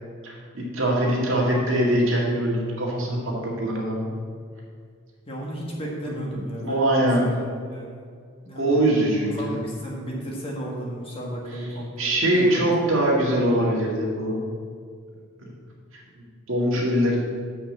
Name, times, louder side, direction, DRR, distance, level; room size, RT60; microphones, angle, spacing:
voice 1, 0.2-4.1 6.0-7.2 8.6-9.6 12.0-14.4 15.4-15.5 15.9-17.2, right 1 dB, 60° right, -3 dB, 2.0 m, -23 dB
voice 2, 5.3-8.0 8.5-8.8 9.3-12.7, right 1 dB, 25° left, -2 dB, 1.4 m, -34 dB
6.6 x 5.5 x 7.2 m, 2.1 s
head